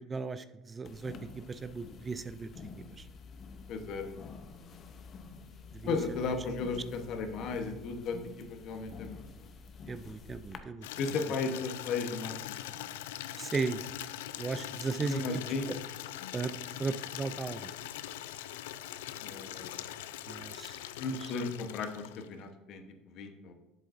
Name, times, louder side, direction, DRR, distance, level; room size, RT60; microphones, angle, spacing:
voice 1, 0.0-3.1 5.7-6.0 9.9-10.9 13.4-13.8 14.4-15.4 15.7-15.8 16.3-16.5 16.8-17.7 20.3-20.8 21.2-21.3, right 4 dB, 25° right, 13 dB, 0.4 m, -36 dB
sound 1, 0.8-10.6, left 4 dB, 40° left, 0.7 m, -48 dB
voice 2, 3.7-4.1 5.9-9.5 11.0-12.8 15.0-15.7 19.2-20.0 21.0-23.5, left 4 dB, 55° left, 6 dB, 1.0 m, -36 dB
Water tap faucet / Liquid, 10.8-22.4, left 12 dB, 90° left, 0.3 m, -42 dB
7.6 x 7.5 x 2.6 m, 1.0 s
supercardioid pair, 100°, 0 cm